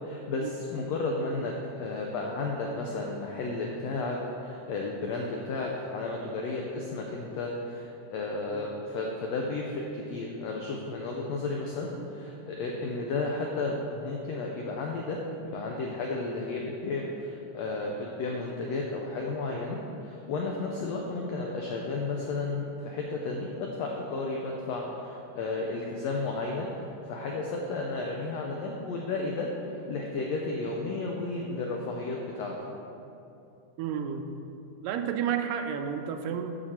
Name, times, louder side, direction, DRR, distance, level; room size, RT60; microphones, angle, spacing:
voice 1, 0.0-32.7, left 3 dB, 85° left, 0 dB, 1.5 m, -33 dB
voice 2, 33.8-34.3 34.8-36.6, right 8 dB, 90° right, 6 dB, 2.2 m, -31 dB
12.0 x 4.9 x 4.3 m, 2.7 s
omnidirectional pair, 3.8 m